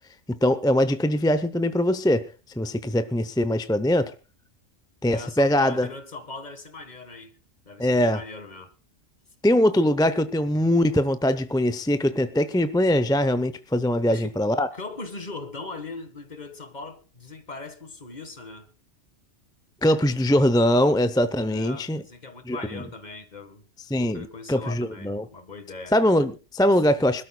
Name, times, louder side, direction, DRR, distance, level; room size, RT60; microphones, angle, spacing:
voice 1, 0.3-2.3 2.6-4.1 5.0-5.9 7.8-8.2 9.4-14.7 19.8-22.0 22.5-22.8 23.9-25.3 25.9-27.2, left 1 dB, 5° left, 0.6 m, -22 dB
voice 2, 5.1-7.4 7.7-8.7 14.1-14.3 14.7-18.7 21.5-23.6 24.0-26.0, left 3 dB, 40° left, 1.6 m, -40 dB
25.5 x 13.0 x 2.3 m
omnidirectional pair, 1.2 m